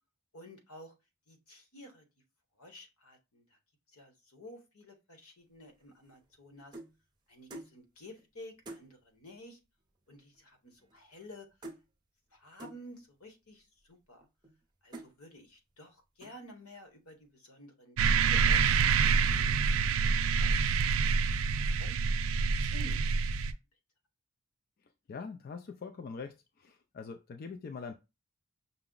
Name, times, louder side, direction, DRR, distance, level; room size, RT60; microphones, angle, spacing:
voice 1, 0.3-0.9 1.3-2.1 2.6-3.6 3.9-6.8 7.3-9.6 10.1-11.5 12.3-14.2 14.8-18.6 19.0-20.6 20.9-22.0 22.4-23.0, equal, 80° left, 5 dB, 1.1 m, -52 dB
sound 1, 5.8-7.0 7.5-7.8 8.2-8.3 8.6-8.9 9.8-9.9 10.1-10.4 10.7-11.4 11.6-11.9 12.6-12.8 13.5-13.6 14.2-14.6 14.9-15.2 15.7-15.9 16.2-16.6, right 1 dB, 20° right, 0.6 m, -48 dB
sound 2, 18.0-23.5, right 5 dB, 65° right, 0.3 m, -27 dB
voice 2, 25.1-27.9, left 5 dB, 45° left, 6 dB, 0.3 m, -43 dB
5.7 x 2.0 x 3.7 m, 0.26 s
head